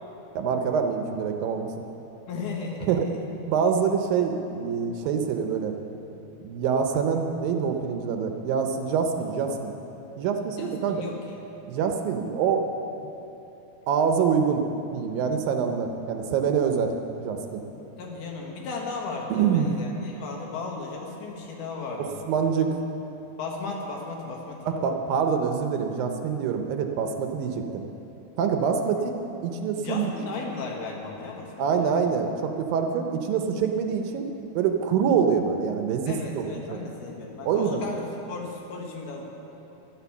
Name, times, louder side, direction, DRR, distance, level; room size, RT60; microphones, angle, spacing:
voice 1, 0.4-1.7 2.9-3.1 3.5-5.7 6.4-9.7 10.2-11.0 11.7-12.7 13.9-14.6 14.9-17.6 19.3-19.7 22.0-22.8 24.7-27.8 28.4-29.2 29.4-30.1 31.6-34.3 34.6-36.8 37.5-37.8, right 6 dB, 80° right, 5 dB, 2.1 m, -25 dB
voice 2, 2.3-3.3 10.6-11.2 17.8-22.2 23.4-24.6 29.7-31.5 31.8-32.1 36.1-39.3, left 4 dB, 70° left, -1 dB, 3.4 m, -35 dB
12.0 x 11.5 x 7.1 m, 3.0 s
omnidirectional pair, 4.8 m